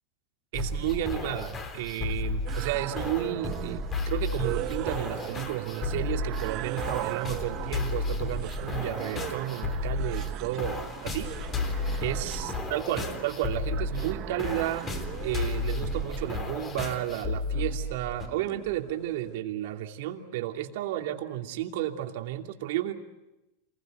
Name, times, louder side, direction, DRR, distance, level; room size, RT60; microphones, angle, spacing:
sound 1, 0.5-18.3, left 3 dB, 25° left, 3.6 m, -33 dB
voice 1, 0.5-11.3 12.0-14.9 15.2-22.9, right 13 dB, 70° right, 4 dB, 2.8 m, -32 dB
sound 2, 2.5-19.4, right 16 dB, 45° right, 0.9 m, -39 dB
27.5 x 21.0 x 9.3 m, 0.97 s
supercardioid pair, 135°, 0 cm